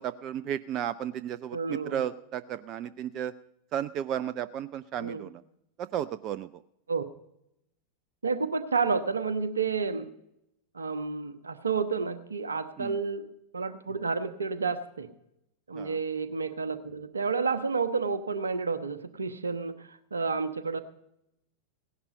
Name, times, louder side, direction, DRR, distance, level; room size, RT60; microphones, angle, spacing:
voice 1, 0.0-3.3 3.7-5.4 5.8-6.6 12.8-13.0 15.7-16.0, right 10 dB, 35° right, 16 dB, 0.4 m, -34 dB
voice 2, 1.5-2.0 5.0-5.3 6.9-7.0 8.2-10.1 10.7-13.3 13.5-15.1 15.7-20.8, right 4 dB, 75° right, 11 dB, 1.1 m, -30 dB
17.5 x 11.0 x 5.3 m, 0.80 s
figure-of-eight pair, 90°, 0 cm